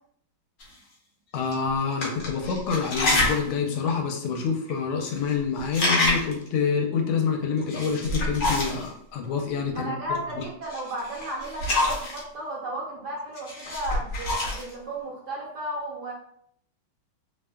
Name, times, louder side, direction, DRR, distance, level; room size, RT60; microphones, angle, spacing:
sound 1, 0.6-0.7 1.4-1.5 1.9-3.5 3.9-4.0 4.7-4.8 5.0-5.3 5.6-6.5 7.6-8.9 10.7-12.2 13.4-14.7, left 2 dB, 60° left, 1.0 m, -27 dB
voice 1, 1.3-9.9 10.4-10.5, left 5 dB, 80° left, 2 dB, 1.4 m, -27 dB
voice 2, 9.7-16.1, right 1 dB, 70° right, -4 dB, 1.0 m, -34 dB
3.3 x 2.1 x 2.2 m, 0.65 s
omnidirectional pair, 2.3 m